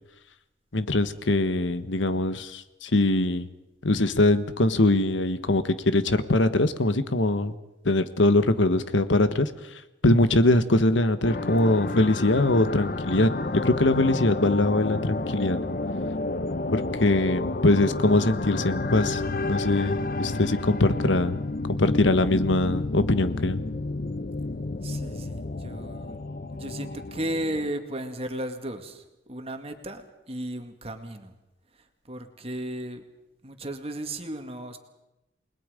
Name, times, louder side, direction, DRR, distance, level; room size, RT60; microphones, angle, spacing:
voice 1, 0.7-3.5 3.8-7.5 7.8-9.5 10.0-15.6 16.7-21.4 21.8-23.6, left 2 dB, 90° left, 11 dB, 1.3 m, -22 dB
sound 1, 11.2-27.7, left 2 dB, 50° left, 0.8 m, -30 dB
voice 2, 24.8-26.2 26.5-31.3 32.1-33.0 33.4-34.8, right 1 dB, 35° right, 6 dB, 2.1 m, -35 dB
29.0 x 21.0 x 5.1 m, 0.94 s
head